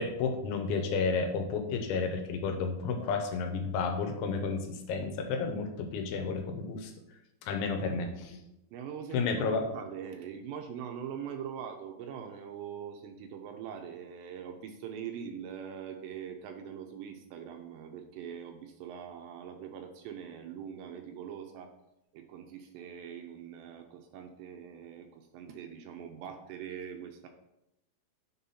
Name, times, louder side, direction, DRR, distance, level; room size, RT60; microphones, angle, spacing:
voice 1, 0.0-6.9 7.4-8.4 9.1-9.6, left 4 dB, 85° left, 5 dB, 3.1 m, -31 dB
voice 2, 8.7-21.7 22.1-27.3, right 8 dB, 80° right, 4 dB, 2.6 m, -42 dB
6.8 x 4.2 x 5.5 m, 0.87 s
omnidirectional pair, 5.3 m